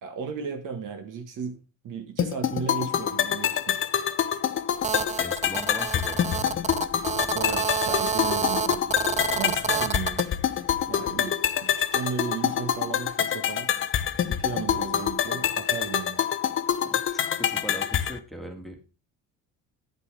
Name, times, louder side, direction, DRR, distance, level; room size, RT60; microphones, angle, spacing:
voice 1, 0.0-1.6 1.8-3.8 7.3-10.2 10.9-11.3 11.6-13.7 14.3-16.2, right 6 dB, 60° right, 7 dB, 1.5 m, -35 dB
sound 1, 2.2-18.2, left 9 dB, 35° left, 0.6 m, -26 dB
Telephone, 4.8-10.3, right 6 dB, 20° right, 0.5 m, -29 dB
voice 2, 5.0-6.6 9.4-9.9 16.8-18.9, equal, ahead, 3 dB, 1.8 m, -40 dB
9.6 x 8.3 x 3.4 m, 0.32 s
cardioid pair, 100°, 35 cm